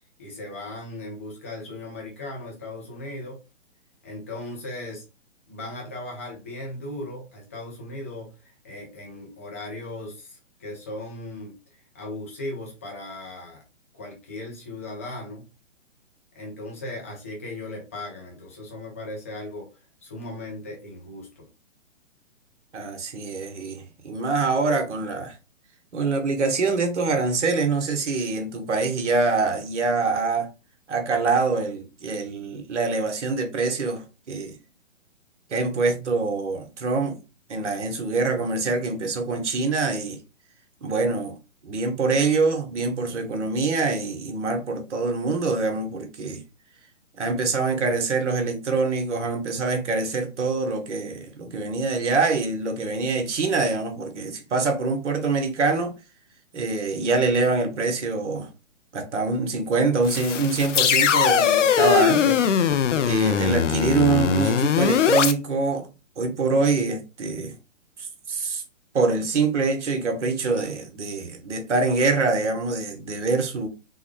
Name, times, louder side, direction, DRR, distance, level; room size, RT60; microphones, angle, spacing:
voice 1, 0.2-3.4 4.0-5.1 5.5-11.5 11.9-13.6 13.9-15.5 16.3-19.7 20.0-21.5, left 2 dB, 10° left, 0.4 m, -37 dB
voice 2, 22.7-25.3 25.9-30.5 30.9-34.6 35.5-37.2 37.5-40.2 40.8-41.4 41.6-46.4 47.2-55.9 56.5-58.5 58.9-62.4 63.0-65.9 66.2-67.6 68.3-68.6 68.9-73.7, right 3 dB, 70° right, 1.1 m, -24 dB
sound 1, 60.0-65.3, left 8 dB, 75° left, 0.5 m, -21 dB
3.6 x 2.1 x 3.1 m
hypercardioid pair, 140°, 37 cm